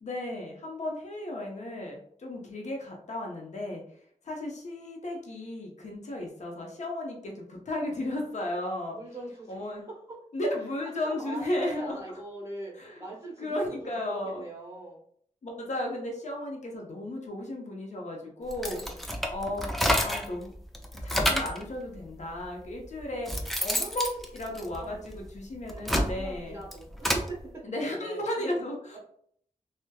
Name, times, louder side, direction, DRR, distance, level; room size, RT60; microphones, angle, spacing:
voice 1, 0.0-3.8 4.2-9.0 9.5-9.8 10.3-12.0 12.8-13.0 13.4-14.4 15.4-18.8 19.3-19.7 20.0-20.5 21.0-26.6 27.6-29.0, left 1 dB, 60° left, 0 dB, 0.7 m, -34 dB
voice 2, 8.9-10.2 11.0-15.0 18.7-19.0 24.6-25.0 26.1-28.5, right 2 dB, 25° right, -7 dB, 0.9 m, -42 dB
sound 1, 18.5-20.4 20.7-21.6 22.4-22.5 23.0-25.1 25.6-27.3, equal, ahead, 0.4 m, -29 dB
2.7 x 2.1 x 2.2 m, 0.63 s
cardioid pair, 50°, 14 cm